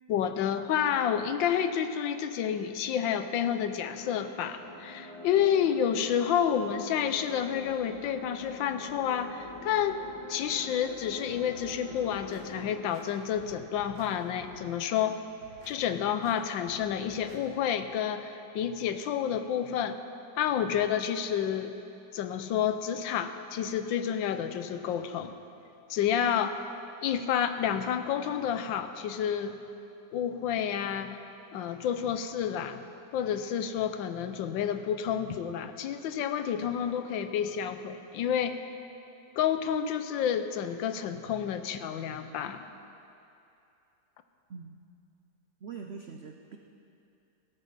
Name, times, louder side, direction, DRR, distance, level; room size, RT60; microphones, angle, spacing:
voice 1, 0.1-10.0 10.3-15.2 15.7-20.0 20.4-21.8 22.1-25.3 25.9-26.6 27.0-29.6 30.1-31.2 31.5-32.8 33.1-38.7 39.4-42.7, left 9 dB, 80° left, 9 dB, 1.4 m, -29 dB
sound 1, 3.9-12.7, left 1 dB, 25° left, 3.8 m, -45 dB
sound 2, 11.5-12.4 12.9-14.1 14.4-14.7 15.2-15.8 16.2-16.4 16.6-17.4 17.8-17.9, right 1 dB, 65° right, 2.5 m, -54 dB
voice 2, 45.6-46.6, right 5 dB, 80° right, 3 dB, 0.5 m, -43 dB
18.5 x 13.0 x 4.1 m, 2.8 s
omnidirectional pair, 2.0 m